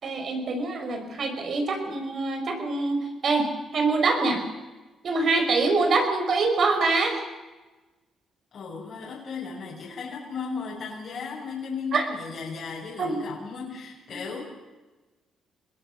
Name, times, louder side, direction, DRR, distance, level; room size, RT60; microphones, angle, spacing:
voice 1, 0.0-4.4 5.0-7.2 11.9-12.0 13.0-13.2, right 3 dB, 55° right, 5 dB, 5.7 m, -25 dB
voice 2, 8.5-14.4, left 5 dB, 55° left, -4 dB, 6.2 m, -35 dB
26.0 x 20.5 x 6.3 m, 1.2 s
cardioid pair, 90°, 0 cm